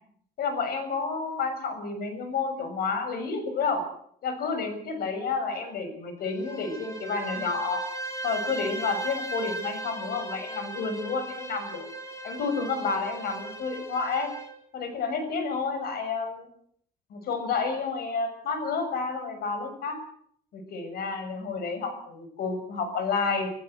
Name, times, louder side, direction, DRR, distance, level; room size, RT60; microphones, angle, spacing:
voice 1, 0.4-3.8 4.2-7.8 8.2-11.9 12.2-14.3 14.7-16.5 17.1-20.0 20.5-23.5, left 4 dB, 65° left, 8 dB, 6.8 m, -30 dB
Bowed string instrument, 6.2-14.6, right 2 dB, 20° left, 4.6 m, -37 dB
26.5 x 14.5 x 7.9 m, 0.65 s
cardioid pair, 110°, 17 cm